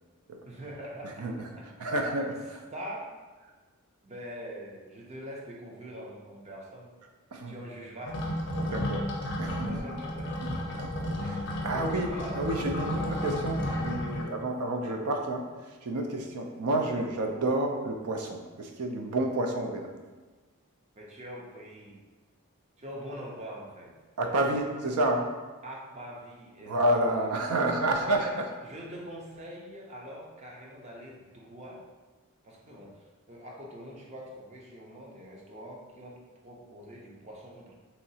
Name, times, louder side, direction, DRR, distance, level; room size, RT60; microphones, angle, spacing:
voice 1, 0.4-1.3 1.6-1.9 2.7-3.2 4.0-6.9 7.5-8.2 9.6-10.6 11.2-12.6 12.9-13.2 14.8-15.0 21.0-22.0 22.8-23.9 25.6-27.4 28.0-28.4 28.6-31.8 32.4-37.7, equal, 30° right, -2 dB, 0.5 m, -44 dB
voice 2, 1.8-2.6 7.3-7.6 8.6-9.1 9.4-9.8 10.8-11.4 11.6-12.1 12.3-19.9 24.2-25.3 26.6-28.4, right 1 dB, 90° right, 3 dB, 0.5 m, -30 dB
sound 1, 8.1-14.2, left 1 dB, 50° left, 0.4 m, -32 dB
3.1 x 2.8 x 2.7 m, 1.3 s
head